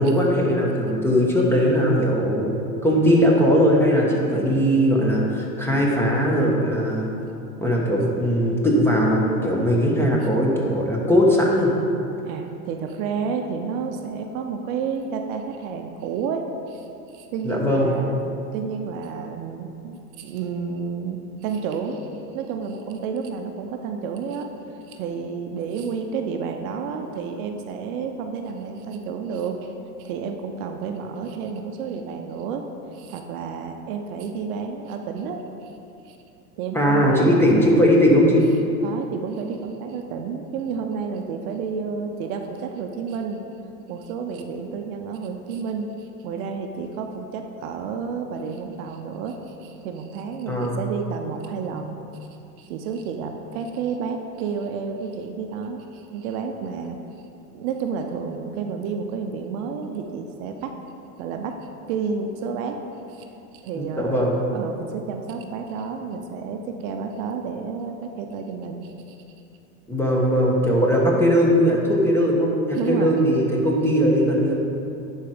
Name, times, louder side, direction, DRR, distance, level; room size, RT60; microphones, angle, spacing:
voice 1, 0.0-2.6 2.8-7.1 7.6-11.7 17.4-17.9 36.7-38.4 50.5-50.8 63.7-64.4 69.9-74.5, equal, 5° left, -3 dB, 1.4 m, -19 dB
voice 2, 12.2-18.2 18.5-24.5 24.9-29.7 30.0-32.6 32.9-35.7 36.0-36.2 36.6-37.9 38.8-43.4 43.9-52.0 52.6-57.0 57.5-60.7 61.2-61.6 61.9-62.8 63.1-63.3 63.6-69.2 72.7-73.3, right 5 dB, 60° right, 4 dB, 0.8 m, -30 dB
10.0 x 4.6 x 5.0 m, 2.8 s
hypercardioid pair, 105°, 46 cm